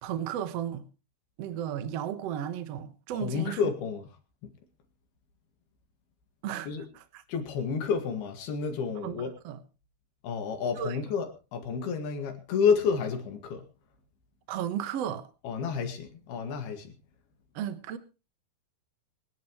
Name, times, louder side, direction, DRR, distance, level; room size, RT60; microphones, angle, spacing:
voice 1, 0.0-0.9 1.4-3.6 6.4-6.7 6.9-7.2 9.0-9.6 10.8-11.0 14.5-15.3 17.5-18.0, right 10 dB, 65° right, 1.6 m, -34 dB
voice 2, 3.1-4.1 4.4-4.5 6.7-6.8 7.3-9.3 10.2-13.6 15.4-16.9, left 6 dB, 75° left, 3.9 m, -30 dB
24.5 x 10.5 x 3.1 m
omnidirectional pair, 4.5 m